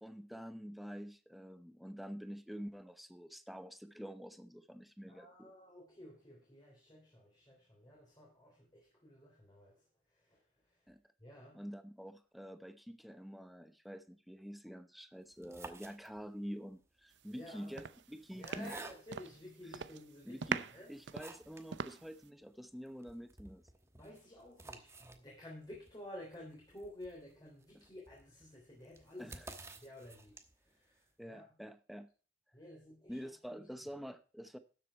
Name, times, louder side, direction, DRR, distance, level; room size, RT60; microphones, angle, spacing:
voice 1, 0.0-5.5 10.9-11.0 11.5-18.8 19.6-19.8 20.2-23.6 27.7-27.8 29.2-29.5 31.2-32.1 33.1-34.6, equal, ahead, 10 dB, 0.8 m, -47 dB
voice 2, 5.1-9.7 10.1-10.4 11.2-11.6 17.3-17.7 18.3-20.9 23.9-29.4 29.7-30.4 30.7-31.4 32.5-33.2 33.5-33.6, left 1 dB, 25° left, -2 dB, 3.2 m, -52 dB
sound 1, 15.3-16.5 17.3-19.4 20.0-20.1 20.6-21.7 22.0-22.1 22.4-22.5 22.9-30.7, right 3 dB, 15° right, 1.2 m, -54 dB
sound 2, 17.3-17.5 17.8-19.4 19.7-20.1 20.4-22.3, right 6 dB, 75° right, 0.6 m, -41 dB
12.5 x 7.6 x 4.4 m, 0.37 s
head